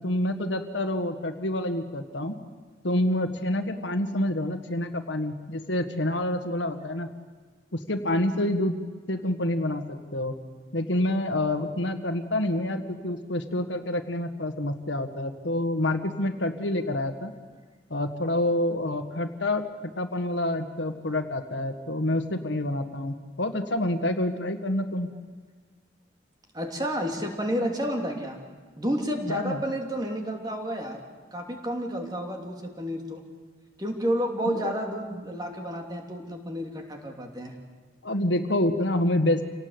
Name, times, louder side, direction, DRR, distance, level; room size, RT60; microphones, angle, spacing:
voice 1, 0.0-2.4 2.8-7.1 7.7-8.7 9.1-10.3 10.7-17.3 17.9-19.6 20.0-25.1 29.3-29.6 34.4-34.7 38.0-39.4, left 1 dB, 85° left, 7 dB, 1.8 m, -27 dB
voice 2, 26.5-28.4 28.8-31.0 31.3-33.2 33.8-37.5, equal, 20° right, 2 dB, 2.9 m, -30 dB
27.5 x 18.0 x 8.1 m, 1.5 s
head